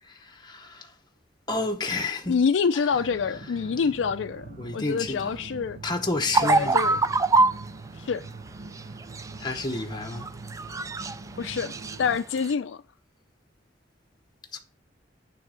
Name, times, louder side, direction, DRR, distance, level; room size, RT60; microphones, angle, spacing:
voice 1, 0.0-0.9 1.5-2.4 2.7-2.9 4.6-5.4 5.8-6.8 9.4-10.3 14.5-14.6, left 2 dB, 25° left, 0.8 m, -30 dB
voice 2, 2.3-5.8 6.4-7.0 8.0-8.3 11.4-11.7 12.0-12.8, left 6 dB, 75° left, 0.4 m, -26 dB
sound 1, 2.9-12.2, right 3 dB, 45° right, 0.8 m, -43 dB
sound 2, 6.3-7.6 9.0-9.8 10.1-11.2 11.5-12.0 12.4-12.5, right 3 dB, 15° right, 0.3 m, -23 dB
9.3 x 3.4 x 6.3 m
head